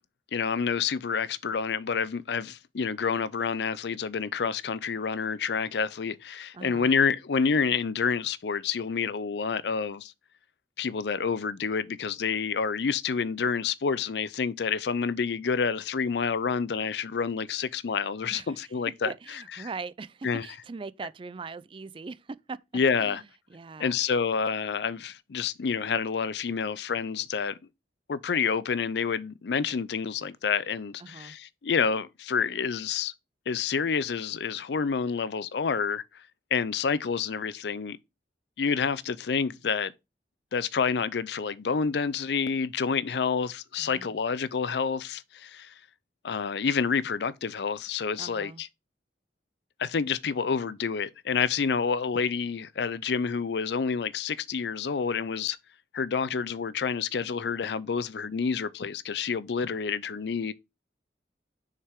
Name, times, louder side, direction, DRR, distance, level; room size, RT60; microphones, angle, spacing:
voice 1, 0.3-10.1 10.8-19.7 20.2-20.5 22.7-23.2 23.8-27.6 28.1-33.1 33.5-36.0 36.5-38.0 38.6-39.9 40.5-45.7 46.2-48.7 49.8-55.6 55.9-60.5, left 6 dB, 65° left, 0.5 m, -28 dB
voice 2, 6.5-6.9 18.3-18.6 19.0-22.6 23.0-23.2 23.5-24.0 31.0-31.4 43.8-44.2 48.2-48.6, right 4 dB, 30° right, 0.4 m, -41 dB
6.6 x 5.6 x 3.6 m
head